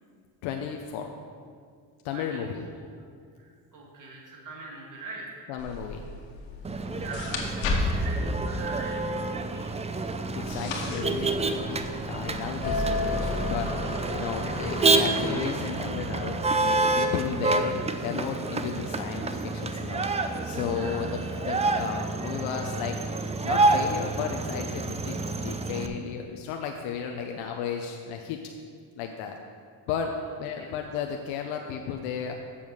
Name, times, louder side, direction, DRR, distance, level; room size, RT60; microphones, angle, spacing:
voice 1, 0.4-1.1 2.0-2.6 5.5-6.1 10.0-20.1 20.4-23.0 23.4-28.4 29.0-29.4 29.9-32.3, left 7 dB, 90° left, 3 dB, 0.8 m, -34 dB
voice 2, 2.1-2.9 3.3-5.5 6.9-9.7 20.7-21.0 30.2-30.7, right 3 dB, 40° right, -2 dB, 2.3 m, -42 dB
sound 1, 5.6-12.7, left 2 dB, 75° left, 1.7 m, -34 dB
Motor vehicle (road), 6.6-25.9, right 3 dB, 15° right, 0.4 m, -28 dB
sound 2, 12.6-16.9, left 2 dB, 20° left, 1.8 m, -32 dB
7.2 x 7.1 x 6.2 m, 2.1 s
cardioid pair, 105°, 46 cm